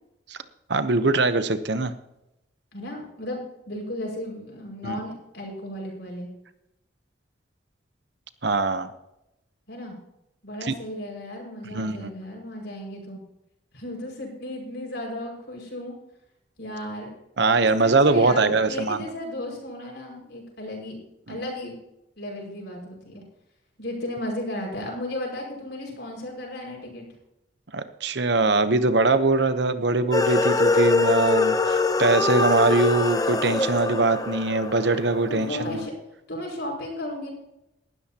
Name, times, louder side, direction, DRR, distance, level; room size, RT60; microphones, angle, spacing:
voice 1, 0.7-1.9 4.8-5.0 8.4-8.9 10.6-10.7 11.7-12.1 17.4-19.0 21.3-21.4 27.7-35.7, right 3 dB, 60° right, 11 dB, 0.9 m, -22 dB
voice 2, 2.7-3.4 3.7-6.3 9.7-10.0 10.4-13.2 13.7-15.9 16.6-17.1 17.6-21.0 21.3-21.8 22.2-23.2 23.8-27.1 35.3-35.9 36.3-37.3, left 1 dB, 60° left, 0 dB, 5.5 m, -34 dB
sound 1, 30.1-35.5, left 3 dB, 20° left, 0.6 m, -23 dB
19.0 x 13.0 x 2.9 m, 0.87 s
head